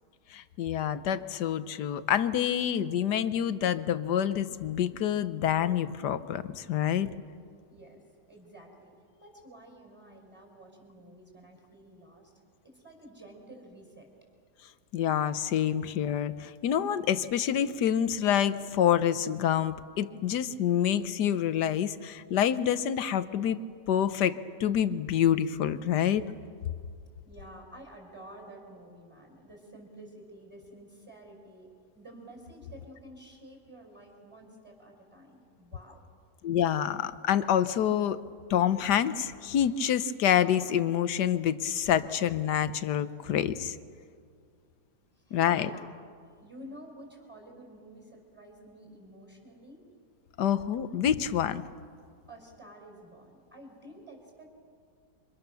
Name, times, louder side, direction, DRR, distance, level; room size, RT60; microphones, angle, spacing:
voice 1, 0.3-7.1 14.9-23.6 23.9-26.2 36.4-38.2 38.5-43.8 45.3-45.7 50.4-51.6, left 9 dB, 70° left, 13 dB, 1.4 m, -27 dB
voice 2, 7.7-8.9 9.2-12.3 12.6-14.1 27.2-31.7 31.9-36.0 45.2-45.9 46.4-49.9 52.3-54.5, right 1 dB, 5° right, 0 dB, 5.9 m, -50 dB
28.0 x 25.5 x 6.9 m, 2.2 s
omnidirectional pair, 1.9 m